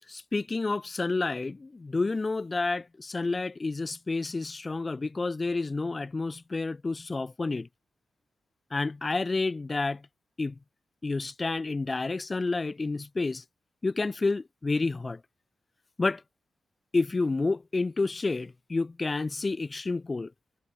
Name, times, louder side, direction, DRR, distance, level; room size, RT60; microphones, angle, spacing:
voice 1, 0.1-7.7 8.7-10.1 10.4-10.6 11.0-13.4 13.8-15.2 16.0-16.2 16.9-20.3, left 3 dB, 30° left, 3.7 m, -29 dB
cardioid pair, 75°, 0 cm